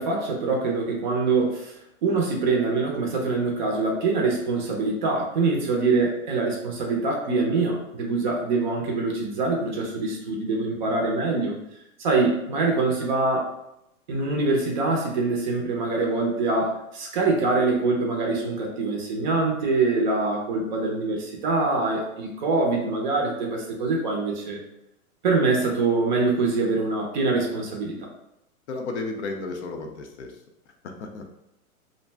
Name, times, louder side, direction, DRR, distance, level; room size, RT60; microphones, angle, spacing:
voice 1, 0.0-1.7 2.0-11.5 12.0-13.5 14.1-24.6 25.2-27.9, right 3 dB, 35° right, 0 dB, 0.5 m, -24 dB
voice 2, 28.7-30.4 30.8-31.3, left 3 dB, 50° left, 4 dB, 0.5 m, -33 dB
2.5 x 2.0 x 3.2 m, 0.84 s
hypercardioid pair, 145°, 43 cm